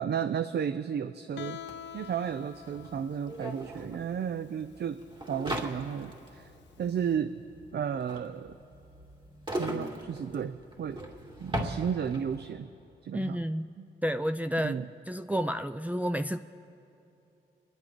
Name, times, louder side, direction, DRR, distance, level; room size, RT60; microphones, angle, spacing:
voice 1, 0.0-1.6 1.9-6.5 6.8-7.4 7.7-8.6 9.6-11.0 11.4-12.7 13.0-13.4 13.8-13.9 14.6-14.9, right 8 dB, 60° right, 11 dB, 0.6 m, -33 dB
Guitar, 1.4-7.1, left 10 dB, 70° left, 0.5 m, -47 dB
sound 1, 1.7-1.8 2.0-12.4, right 1 dB, 25° right, 2.7 m, -39 dB
voice 2, 13.1-16.4, equal, 10° right, 7 dB, 0.5 m, -31 dB
27.0 x 11.5 x 4.5 m, 2.7 s
supercardioid pair, 45°, 19 cm